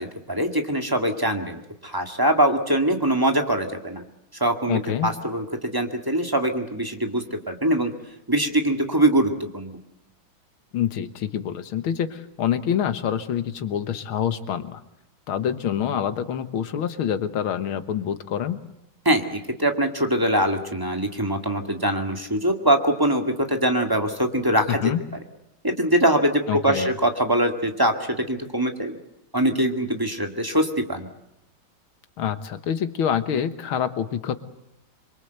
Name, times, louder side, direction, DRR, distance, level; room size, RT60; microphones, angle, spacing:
voice 1, 0.0-4.0 4.4-7.9 8.3-9.8 19.1-24.9 25.6-29.0 29.3-31.1, right 1 dB, 10° right, 5 dB, 1.9 m, -23 dB
voice 2, 4.7-5.1 10.7-14.8 15.3-18.6 24.7-25.0 26.5-26.9 32.2-34.3, left 9 dB, 90° left, 11 dB, 2.1 m, -26 dB
26.5 x 23.0 x 8.0 m, 0.82 s
omnidirectional pair, 2.2 m